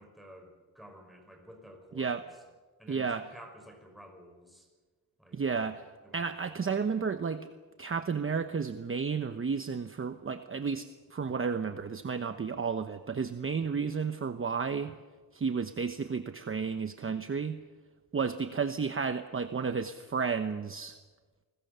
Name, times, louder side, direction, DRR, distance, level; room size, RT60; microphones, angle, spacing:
voice 1, 0.0-2.3 2.8-4.7 5.2-5.8 6.0-6.7, equal, ahead, 3 dB, 5.7 m, -53 dB
voice 2, 2.9-3.2 5.3-5.8 6.1-7.5 7.8-14.9 15.3-17.6 18.1-21.0, right 5 dB, 35° right, 8 dB, 1.0 m, -32 dB
29.0 x 20.5 x 6.9 m, 1.3 s
wide cardioid pair, 130°, 39 cm